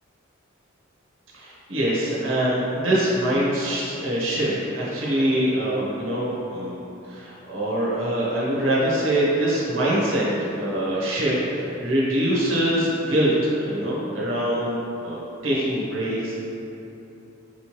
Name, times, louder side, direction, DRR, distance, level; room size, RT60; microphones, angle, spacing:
voice 1, 1.3-10.2 10.5-16.4, right 1 dB, 70° right, -7 dB, 0.8 m, -24 dB
4.3 x 2.9 x 3.0 m, 2.9 s
head